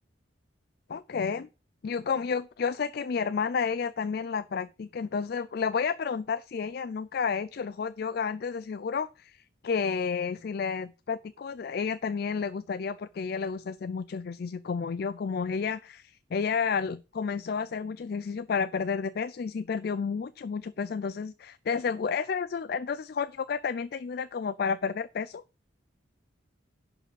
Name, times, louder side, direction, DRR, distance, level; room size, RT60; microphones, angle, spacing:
voice 1, 0.9-1.5 1.8-25.4, left 5 dB, 50° left, 0.3 m, -31 dB
11.0 x 4.9 x 5.2 m
head